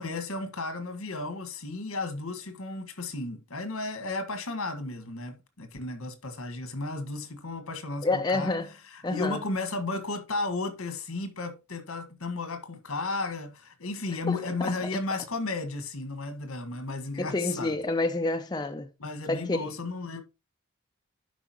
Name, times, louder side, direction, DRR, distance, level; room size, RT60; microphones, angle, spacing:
voice 1, 0.0-8.6 8.9-17.8 19.0-20.2, left 3 dB, 75° left, 1.6 m, -34 dB
voice 2, 8.0-8.7 9.0-9.4 14.3-15.0 17.2-18.9 19.3-19.7, left 2 dB, 20° left, 0.4 m, -29 dB
11.5 x 5.0 x 2.9 m
head